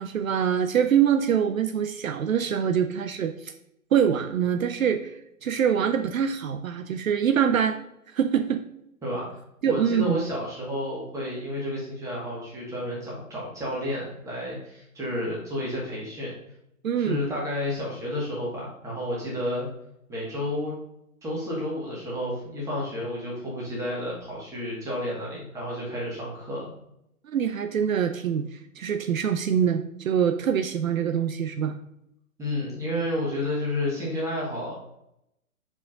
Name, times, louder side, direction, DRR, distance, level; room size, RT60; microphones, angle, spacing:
voice 1, 0.0-3.5 3.9-5.1 5.4-7.8 8.1-8.6 9.6-10.2 16.8-17.2 27.2-31.8, right 8 dB, 65° right, 8 dB, 0.7 m, -24 dB
voice 2, 9.0-9.4 9.6-16.4 17.0-19.7 20.1-20.7 21.2-26.7 32.4-34.7, left 1 dB, 5° right, -6 dB, 1.9 m, -31 dB
6.1 x 5.0 x 3.8 m, 0.80 s
hypercardioid pair, 145°, 43 cm